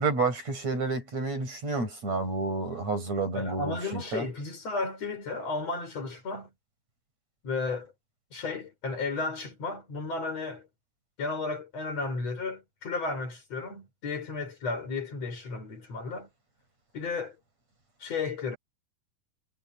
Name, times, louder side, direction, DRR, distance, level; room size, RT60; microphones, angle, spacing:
voice 1, 0.0-4.3, right 3 dB, 55° right, 8.9 m, -30 dB
voice 2, 3.3-6.5 7.4-7.9 8.3-10.7 11.2-16.3 16.9-17.4 18.0-18.6, left 3 dB, 50° left, 6.0 m, -33 dB
omnidirectional pair, 3.8 m